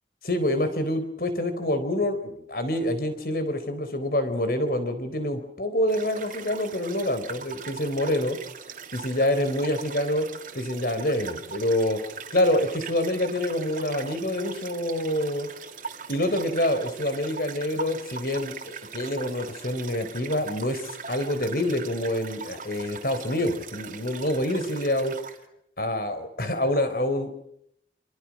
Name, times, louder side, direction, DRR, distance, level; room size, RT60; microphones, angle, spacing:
voice 1, 0.2-8.4 8.9-10.3 10.5-12.0 12.3-15.5 16.1-25.2 25.8-27.3, left 1 dB, 50° left, 10 dB, 4.2 m, -26 dB
sound 1, 5.9-25.4, right 6 dB, 45° right, 2.7 m, -41 dB
28.0 x 26.0 x 6.2 m, 0.73 s
head